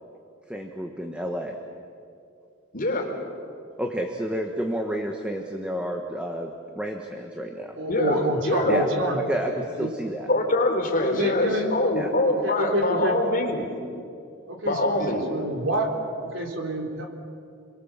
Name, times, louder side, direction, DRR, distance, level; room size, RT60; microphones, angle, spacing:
voice 1, 0.5-1.6 3.8-7.7 8.7-8.9 9.3-10.3 12.0-12.1, equal, 5° right, 2 dB, 1.4 m, -30 dB
voice 2, 2.7-3.1 7.9-8.8 10.3-13.7 14.6-15.2, left 2 dB, 45° left, 1 dB, 4.1 m, -24 dB
voice 3, 7.8-9.2 9.5-9.9 11.0-11.9 12.3-13.3 14.5-15.9 16.2-17.1, right 1 dB, 65° right, 1 dB, 3.8 m, -28 dB
30.0 x 22.5 x 7.4 m, 2.5 s
head